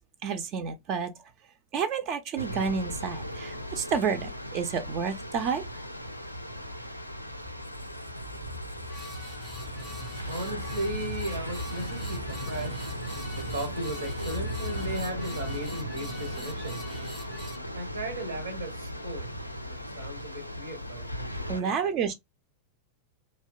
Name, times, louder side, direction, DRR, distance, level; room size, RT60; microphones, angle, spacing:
voice 1, 0.2-1.1 1.7-5.6 21.5-22.1, right 6 dB, 40° right, 0.4 m, -30 dB
sound 1, 2.4-21.6, equal, 90° left, 0.3 m, -37 dB
Squeak, 7.4-15.3, equal, 90° right, 1.1 m, -43 dB
sound 2, 8.8-17.6, left 2 dB, 5° left, 0.6 m, -46 dB
voice 2, 9.6-21.8, right 1 dB, 75° right, 0.7 m, -37 dB
2.7 x 2.1 x 2.3 m
figure-of-eight pair, 90°, 0 cm